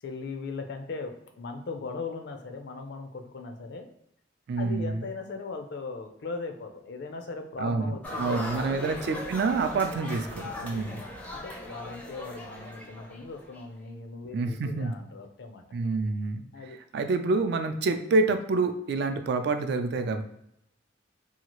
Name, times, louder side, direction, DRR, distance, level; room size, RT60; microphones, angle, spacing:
voice 1, 0.0-3.9 4.6-8.8 10.6-15.6 16.5-16.8, left 4 dB, 65° left, 6 dB, 0.4 m, -39 dB
voice 2, 4.5-5.0 7.6-11.0 14.3-14.9 15.7-16.4 16.9-20.2, right 3 dB, 65° right, 8 dB, 0.3 m, -27 dB
sound 1, 8.0-13.6, left 1 dB, 10° left, 0.4 m, -39 dB
2.8 x 2.3 x 2.9 m, 0.79 s
head